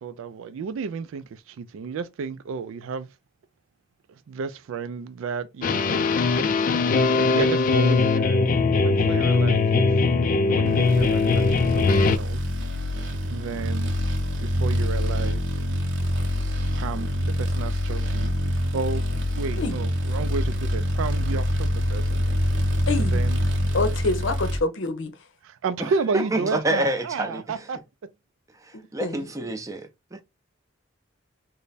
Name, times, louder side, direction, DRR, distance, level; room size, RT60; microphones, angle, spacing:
voice 1, 0.0-3.1 4.3-6.0 7.3-8.4 8.8-10.0 10.3-12.4 13.2-14.0 14.4-15.7 16.7-22.7 23.0-23.4 25.4-28.1, right 5 dB, 80° right, 0.3 m, -32 dB
sound 1, 5.6-12.2, left 4 dB, 40° left, 0.3 m, -20 dB
sound 2, 10.8-24.6, left 1 dB, 60° right, 0.7 m, -25 dB
voice 2, 22.9-23.2 23.7-25.1 29.0-29.5, left 3 dB, 70° left, 0.7 m, -26 dB
voice 3, 26.1-27.4 28.6-30.2, right 1 dB, 15° right, 0.5 m, -28 dB
3.2 x 2.1 x 3.9 m
head